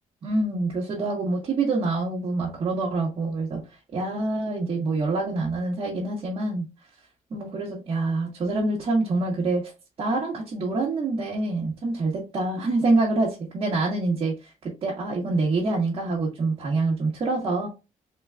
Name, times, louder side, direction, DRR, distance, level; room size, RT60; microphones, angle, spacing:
voice 1, 0.2-3.6 3.9-6.6 7.3-9.7 10.0-17.7, right 3 dB, 40° right, 1.1 m, -26 dB
3.8 x 3.6 x 2.2 m
cardioid pair, 160°, 14 cm